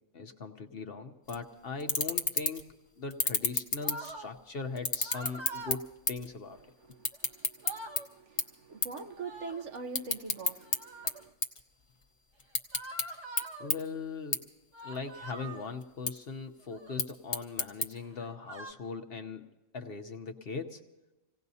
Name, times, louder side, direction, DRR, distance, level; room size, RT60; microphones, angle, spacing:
voice 1, 0.1-5.8 6.1-6.6 13.6-14.4 14.8-19.4 19.7-20.8, left 4 dB, 50° left, 0.9 m, -40 dB
sound 1, 1.3-1.4 1.8-2.7 3.1-4.4 4.8-6.3 6.6-8.0 8.4-8.5 8.8-9.0 9.4-10.8 11.1-12.0 12.4-13.0 13.4-13.5 13.7-13.8 14.3-14.4 14.8-15.3 15.8-16.1 16.8-17.9, left 3 dB, 25° left, 0.8 m, -30 dB
sound 2, 3.8-4.3 5.0-5.8 7.1-7.2 7.5-8.1 9.1-9.7 10.6-11.2 12.7-13.7 14.7-15.7 16.6-17.0 18.0-18.7, right 2 dB, 25° right, 0.7 m, -44 dB
voice 2, 6.9-11.3, right 4 dB, 60° right, 1.1 m, -44 dB
27.0 x 17.5 x 2.7 m
omnidirectional pair, 1.4 m